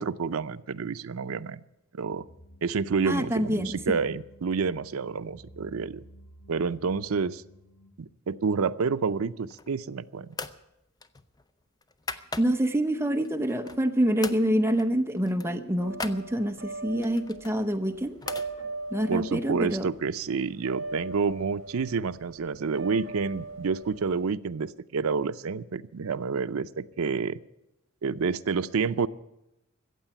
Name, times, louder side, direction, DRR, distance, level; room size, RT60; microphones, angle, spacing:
voice 1, 0.0-1.6 1.9-2.2 2.6-6.0 6.5-7.4 8.0-10.3 19.1-27.4 28.0-29.1, right 5 dB, 85° right, 12 dB, 0.5 m, -29 dB
sound 1, 2.1-7.9, equal, 85° left, 7.8 m, -53 dB
voice 2, 3.1-3.9 12.1-18.2 18.9-19.9, equal, 10° right, 7 dB, 0.8 m, -26 dB
sound 2, 9.4-9.9 10.3-10.6 11.0-12.8 13.2-13.9 14.2-14.4 14.8-14.9 15.2-16.2 17.0-18.5, left 4 dB, 20° left, 0.5 m, -39 dB
sound 3, 15.8-24.3, right 2 dB, 60° right, 2.0 m, -40 dB
15.0 x 8.1 x 10.0 m, 0.91 s
head